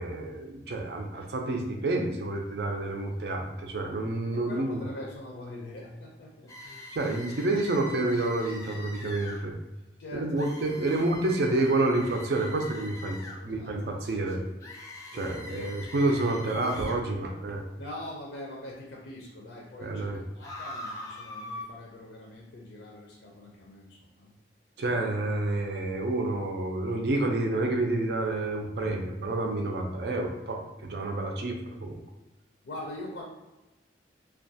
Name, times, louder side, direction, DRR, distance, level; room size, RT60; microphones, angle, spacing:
voice 1, 0.0-4.8 6.9-9.5 10.1-13.2 13.4-14.4 15.1-17.6 19.8-20.2 24.8-32.0, right 2 dB, 65° right, 2 dB, 0.4 m, -29 dB
voice 2, 4.3-7.0 10.0-11.1 11.5-11.6 13.1-14.5 15.1-16.0 17.8-24.3 32.6-33.2, left 1 dB, 80° left, -2 dB, 0.5 m, -43 dB
sound 1, 6.5-9.4 10.4-13.4 14.6-17.0 20.4-21.6, left 1 dB, 20° left, 0.4 m, -43 dB
2.4 x 2.2 x 2.6 m, 1.1 s
head